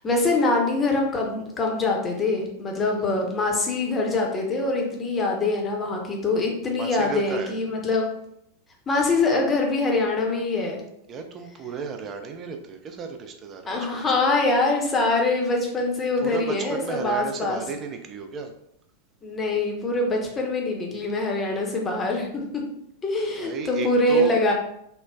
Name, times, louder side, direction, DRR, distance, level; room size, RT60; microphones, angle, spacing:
voice 1, 0.0-8.1 8.9-10.8 13.7-17.6 19.2-22.6 23.0-24.5, left 2 dB, 20° left, 0 dB, 0.6 m, -24 dB
voice 2, 2.8-3.1 6.7-7.5 11.1-14.2 16.2-18.5 23.4-24.4, right 5 dB, 30° right, 5 dB, 0.3 m, -34 dB
3.1 x 2.0 x 2.3 m, 0.75 s
figure-of-eight pair, 90°, 0 cm